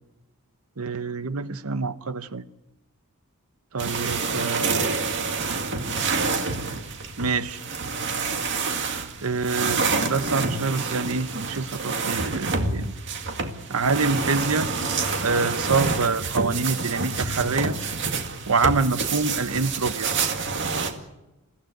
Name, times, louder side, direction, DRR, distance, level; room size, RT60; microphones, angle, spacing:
voice 1, 0.8-2.4 3.7-5.5 7.2-7.6 9.2-12.9 13.7-14.7 15.2-17.8 18.5-20.1, right 4 dB, 75° right, 1.0 m, -26 dB
sound 1, 3.8-20.9, right 4 dB, 55° right, 2.1 m, -28 dB
28.5 x 15.5 x 8.1 m
head